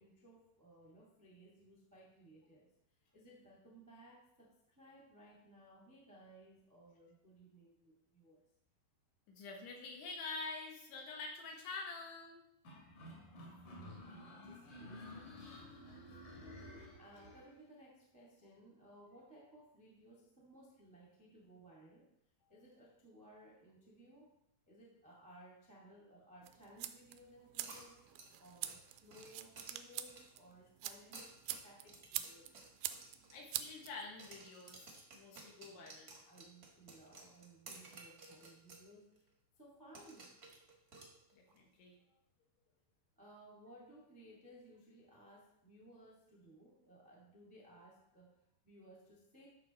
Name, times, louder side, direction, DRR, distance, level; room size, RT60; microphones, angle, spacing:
voice 1, 0.0-2.7 3.1-8.4 13.3-13.4 13.6-15.3 16.9-22.1 22.5-24.3 24.7-28.0 28.4-32.5 35.7-39.3 39.6-40.4 43.1-49.5, right 1 dB, 15° right, -4 dB, 0.7 m, -60 dB
voice 2, 9.3-12.4 33.3-36.1 41.3-42.0, left 3 dB, 75° left, 0 dB, 3.7 m, -47 dB
sound 1, 12.6-17.5, left 1 dB, 55° left, 3.5 m, -52 dB
sound 2, 26.4-34.4, right 13 dB, 90° right, 2.2 m, -46 dB
sound 3, 27.6-30.5 31.0-33.9 34.2-38.9 39.1-39.2 39.9-41.6, right 3 dB, 60° right, 1.0 m, -56 dB
12.0 x 6.3 x 4.4 m, 0.77 s
omnidirectional pair, 5.0 m